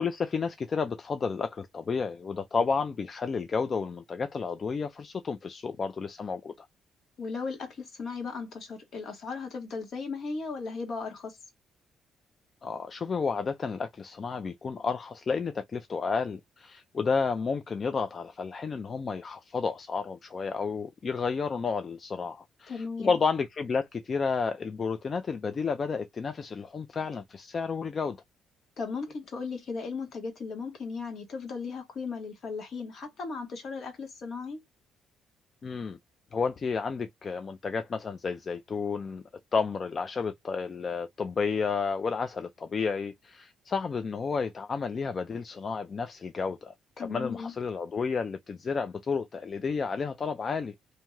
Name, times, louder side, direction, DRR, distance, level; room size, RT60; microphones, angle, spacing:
voice 1, 0.0-6.7 12.6-28.2 35.6-36.0 36.3-39.2 39.5-50.7, left 5 dB, 40° left, 0.3 m, -31 dB
voice 2, 7.2-11.4 22.7-23.1 28.8-34.6 47.0-47.5, left 4 dB, 60° left, 1.2 m, -36 dB
2.7 x 2.2 x 3.0 m
cardioid pair, 90°, 0 cm